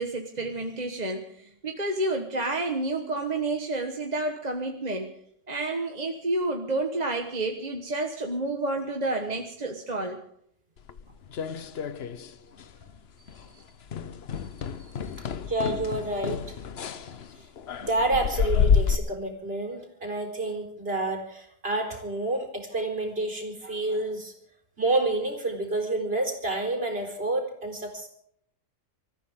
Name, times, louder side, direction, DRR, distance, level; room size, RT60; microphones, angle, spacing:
voice 1, 0.0-5.1 5.5-10.2 13.5-13.6 14.8-15.3, right 2 dB, 35° right, 3 dB, 1.5 m, -30 dB
sound 1, 10.9-12.3 12.6-13.0 13.3-13.5 13.9-19.0, left 6 dB, 55° left, 1.0 m, -28 dB
voice 2, 15.5-16.6 17.0-17.2 17.8-24.3 24.8-28.1, right 2 dB, 50° right, 2 dB, 4.3 m, -29 dB
26.0 x 14.0 x 3.7 m, 0.69 s
omnidirectional pair, 1.3 m